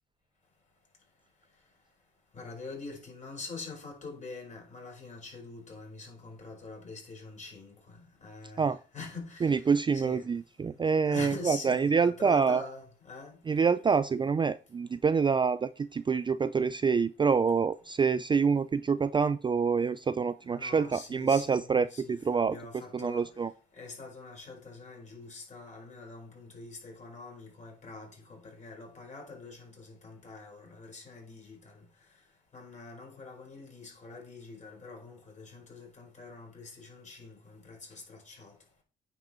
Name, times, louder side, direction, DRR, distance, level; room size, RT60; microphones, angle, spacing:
voice 1, 2.3-10.3 11.0-13.6 20.5-23.3 23.7-31.8 32.5-38.5, left 3 dB, 35° left, 4.9 m, -45 dB
voice 2, 9.4-12.6 13.5-22.5 22.9-23.5, right 5 dB, 25° right, 0.4 m, -26 dB
9.3 x 5.1 x 4.5 m
cardioid pair, 90°, 20 cm